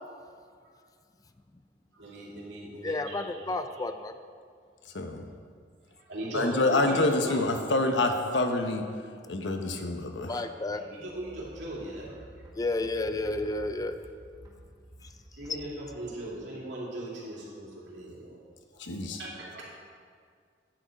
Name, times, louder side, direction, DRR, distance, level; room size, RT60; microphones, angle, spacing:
voice 1, 1.9-3.4 3.7-3.8 5.9-7.5 10.7-12.2 15.3-18.4 18.7-18.8 19.1-19.6, right 1 dB, 80° right, 3.1 m, -39 dB
voice 2, 2.8-4.2 10.3-10.8 12.5-14.0 15.0-15.1, left 2 dB, 20° left, 0.4 m, -31 dB
voice 3, 4.8-5.3 6.3-8.8 9.3-10.5 18.8-19.2, left 2 dB, 90° left, 1.0 m, -27 dB
sound 1, 11.1-16.1, right 1 dB, 25° right, 1.8 m, -51 dB
10.0 x 7.8 x 5.2 m
head